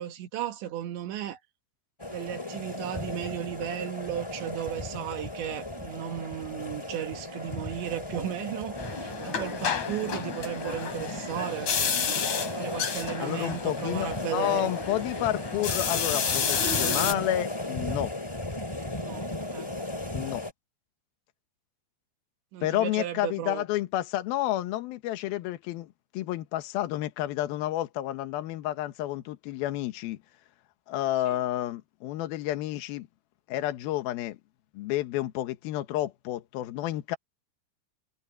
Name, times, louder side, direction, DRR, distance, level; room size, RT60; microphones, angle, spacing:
voice 1, 0.0-1.4 2.1-11.7 12.5-14.7 19.0-19.7 22.5-23.6 31.3-31.4, right 11 dB, 85° right, 4.3 m, -35 dB
sound 1, 2.0-20.5, left 1 dB, 10° left, 2.3 m, -36 dB
sound 2, 8.8-17.1, left 6 dB, 45° left, 3.8 m, -31 dB
voice 2, 13.2-18.1 20.1-20.5 22.6-30.2 30.9-33.1 33.5-34.4 34.7-37.2, left 14 dB, 70° left, 2.8 m, -30 dB
omnidirectional pair, 5.1 m